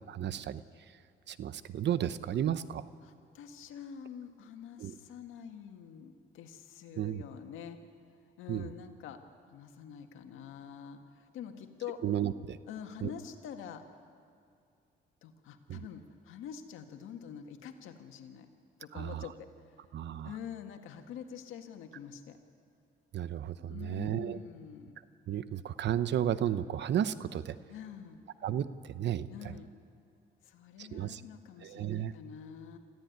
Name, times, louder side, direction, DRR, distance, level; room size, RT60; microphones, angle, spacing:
voice 1, 0.1-0.6 1.3-2.8 4.8-4.9 7.0-7.2 8.5-8.7 12.0-12.6 13.0-13.1 15.7-15.9 18.9-19.3 19.9-20.3 23.1-24.4 25.3-27.6 28.4-29.6 30.8-31.2 31.6-32.1, right 10 dB, 60° right, 14 dB, 0.8 m, -33 dB
voice 2, 3.0-7.8 8.4-9.2 9.5-12.0 12.7-13.8 15.2-18.5 18.8-19.8 20.2-22.4 23.7-25.0 27.7-28.2 29.3-29.7 30.4-32.8, left 8 dB, 90° left, 6 dB, 1.7 m, -46 dB
25.5 x 14.5 x 9.3 m, 2.4 s
cardioid pair, 90°, 20 cm